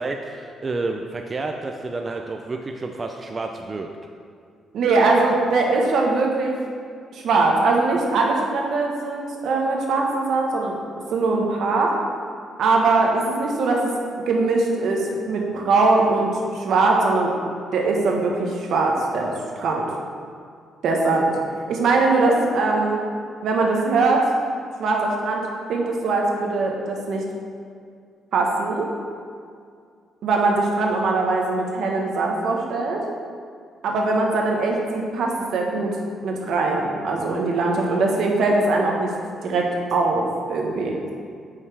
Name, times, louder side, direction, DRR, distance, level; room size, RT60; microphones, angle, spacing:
voice 1, 0.0-3.9, right 3 dB, 30° right, 3 dB, 0.4 m, -30 dB
voice 2, 4.7-6.5 7.1-10.8 11.1-11.9 12.6-13.8 14.3-17.3 17.7-19.8 20.8-21.3 21.7-23.0 23.4-24.2 24.8-25.4 25.7-27.2 28.3-28.9 30.2-33.0 33.8-35.9 36.2-39.1 39.4-41.0, right 3 dB, 75° right, 0 dB, 1.2 m, -21 dB
9.0 x 5.7 x 3.4 m, 2.2 s
cardioid pair, 95°, 0 cm